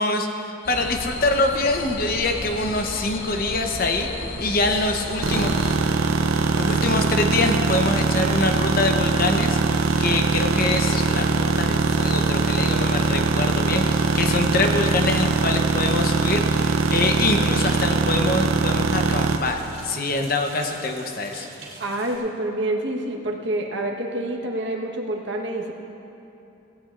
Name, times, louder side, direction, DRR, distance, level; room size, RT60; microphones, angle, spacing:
voice 1, 0.0-4.1 4.4-5.5 6.6-21.5, left 2 dB, 45° left, 4 dB, 0.8 m, -25 dB
sound 1, 0.6-5.8, left 2 dB, 65° left, 1.5 m, -34 dB
sound 2, 4.7-22.2, right 2 dB, 30° right, 2.7 m, -43 dB
sound 3, 5.2-19.4, right 4 dB, 80° right, 0.6 m, -22 dB
voice 2, 21.8-25.7, right 1 dB, 55° right, 0 dB, 1.2 m, -27 dB
17.5 x 16.0 x 2.5 m, 3.0 s
head